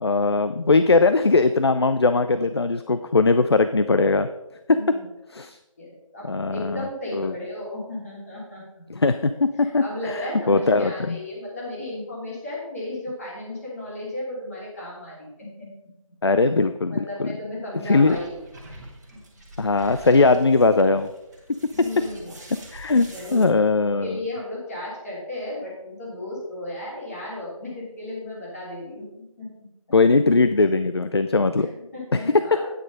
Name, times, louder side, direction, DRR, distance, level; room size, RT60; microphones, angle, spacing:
voice 1, 0.0-4.3 5.3-5.6 6.3-7.3 8.9-10.2 10.5-11.2 16.2-17.3 17.8-18.2 19.6-21.1 22.7-24.2 29.9-31.7 32.1-32.2 32.5-32.6, left 3 dB, 50° left, 11 dB, 0.4 m, -20 dB
voice 2, 4.7-5.0 5.8-8.6 9.6-15.7 16.9-18.4 21.7-22.3 23.0-23.4 24.0-29.0 29.4-29.5 31.6-32.7, left 1 dB, 25° left, -5 dB, 3.1 m, -34 dB
sound 1, 18.1-23.4, right 1 dB, 30° right, 1.8 m, -45 dB
9.1 x 6.1 x 5.3 m, 0.95 s
figure-of-eight pair, 160°, 18 cm